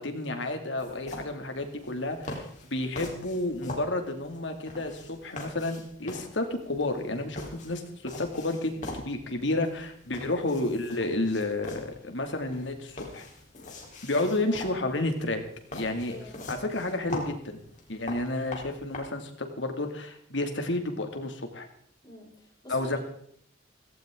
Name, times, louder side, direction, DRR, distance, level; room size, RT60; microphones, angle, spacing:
voice 1, 0.0-2.4 2.7-13.3 14.0-15.4 15.7-16.2 16.5-17.6 17.9-21.7 22.7-23.0, left 2 dB, 70° left, 5 dB, 2.4 m, -31 dB
sound 1, 0.8-19.0, left 2 dB, 40° left, 3.8 m, -43 dB
voice 2, 14.2-14.7 16.1-16.6 22.0-23.0, equal, 20° left, -2 dB, 5.6 m, -45 dB
17.0 x 16.0 x 3.8 m, 0.64 s
head